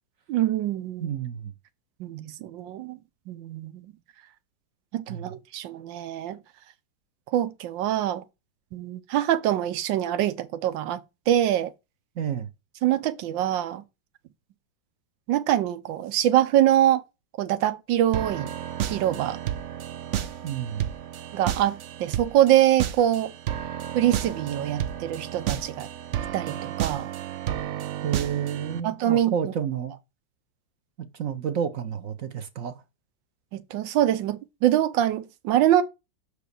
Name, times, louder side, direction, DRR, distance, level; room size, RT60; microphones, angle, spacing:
voice 1, 0.3-1.1 2.0-3.0 3.3-3.9 4.9-6.4 7.3-8.2 8.7-11.0 11.3-11.7 12.8-13.8 15.3-17.0 17.4-18.5 18.8-19.4 21.3-23.3 23.9-25.9 26.3-27.0 28.8-29.3 33.5-35.8, right 12 dB, 90° right, 1.4 m, -24 dB
voice 2, 1.0-1.5 5.1-5.4 12.2-12.5 20.4-20.9 28.0-29.9 31.0-32.8, right 8 dB, 55° right, 1.0 m, -30 dB
sound 1, 18.1-28.8, right 10 dB, 75° right, 0.6 m, -32 dB
5.9 x 5.1 x 6.6 m
omnidirectional pair, 2.0 m